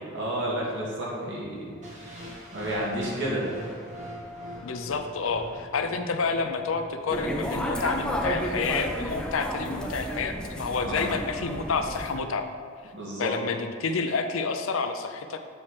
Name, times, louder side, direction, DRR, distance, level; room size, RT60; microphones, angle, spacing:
voice 1, 0.0-3.4 10.8-11.1 12.9-13.3, right 1 dB, 60° right, -5 dB, 1.9 m, -32 dB
sound 1, 1.8-7.8, equal, 35° right, 1.5 m, -43 dB
voice 2, 4.6-12.5 13.2-15.4, left 4 dB, 75° left, 7 dB, 0.6 m, -29 dB
sound 2, 7.1-12.1, equal, 5° left, 0.6 m, -32 dB
8.0 x 4.3 x 4.8 m, 2.2 s
head